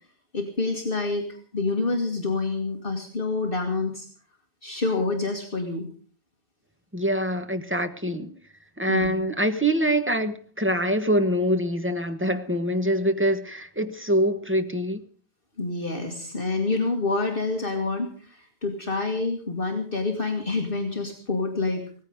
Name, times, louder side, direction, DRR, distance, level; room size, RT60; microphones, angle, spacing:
voice 1, 0.3-4.1 4.6-5.9 8.9-9.1 15.6-21.8, left 3 dB, 50° left, 2.1 m, -27 dB
voice 2, 6.9-8.3 8.8-15.0, equal, 10° right, 1.3 m, -24 dB
17.5 x 15.0 x 5.1 m
omnidirectional pair, 1.2 m